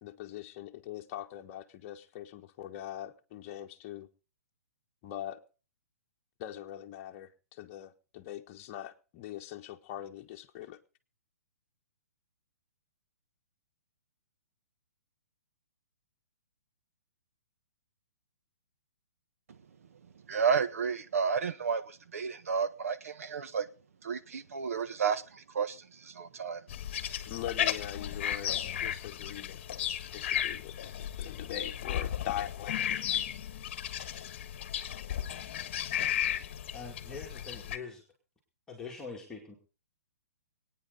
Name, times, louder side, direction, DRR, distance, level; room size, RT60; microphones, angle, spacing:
voice 1, 0.0-4.1 5.0-5.4 6.4-10.8 27.2-29.8 30.1-33.2, left 12 dB, 30° left, 1.3 m, -42 dB
voice 2, 20.3-23.7 24.0-26.6, right 6 dB, 75° right, 1.5 m, -32 dB
sound 1, 26.7-37.8, left 10 dB, 45° left, 1.2 m, -34 dB
voice 3, 36.7-38.0 38.7-39.6, left 4 dB, 5° left, 2.4 m, -43 dB
25.5 x 9.5 x 4.0 m
hypercardioid pair, 155°, 8 cm